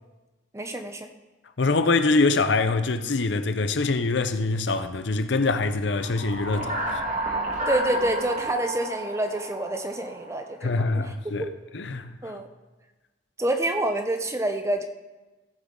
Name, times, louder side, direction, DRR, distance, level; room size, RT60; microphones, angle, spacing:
voice 1, 0.5-1.1 7.7-11.1 11.4-11.5 12.2-12.5 13.4-14.9, right 1 dB, 15° right, 0.7 m, -27 dB
voice 2, 1.6-7.0 10.6-12.4, left 3 dB, 70° left, 0.7 m, -24 dB
sound 1, 5.9-10.6, right 1 dB, 40° right, 1.7 m, -31 dB
16.5 x 7.1 x 3.8 m
head